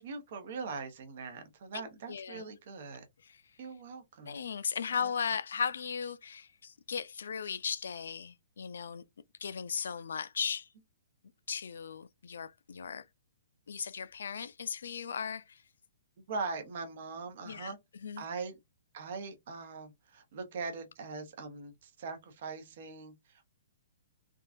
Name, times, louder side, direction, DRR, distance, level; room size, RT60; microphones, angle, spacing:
voice 1, 0.0-3.0 3.6-4.4 5.0-5.1 16.3-17.8 18.2-18.6 18.9-23.5, right 4 dB, 45° right, 0.8 m, -41 dB
voice 2, 2.1-2.4 3.2-3.4 4.3-9.0 9.4-10.7 11.5-13.1 13.7-15.6 17.5-17.7 18.0-18.2, left 6 dB, 80° left, 0.3 m, -37 dB
3.5 x 2.3 x 2.5 m
hypercardioid pair, 170°, 0 cm